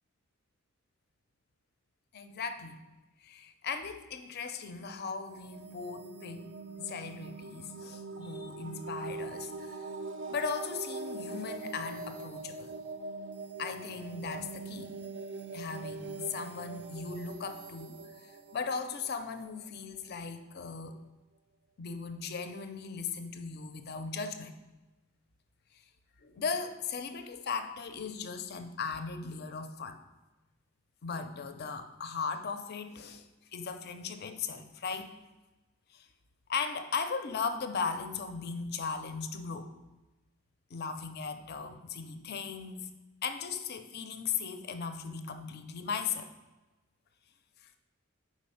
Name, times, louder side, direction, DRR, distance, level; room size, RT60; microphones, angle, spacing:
voice 1, 2.1-2.8 3.2-9.8 10.3-12.7 13.6-14.9 15.5-21.0 21.8-24.5 26.2-30.0 31.0-33.2 33.5-35.1 35.9-36.1 36.5-39.7 40.7-42.9 43.2-46.3, left 5 dB, 50° left, 8 dB, 0.5 m, -37 dB
sound 1, 5.3-20.0, right 3 dB, 55° right, 0.5 m, -43 dB
5.0 x 4.1 x 5.4 m, 1.1 s
head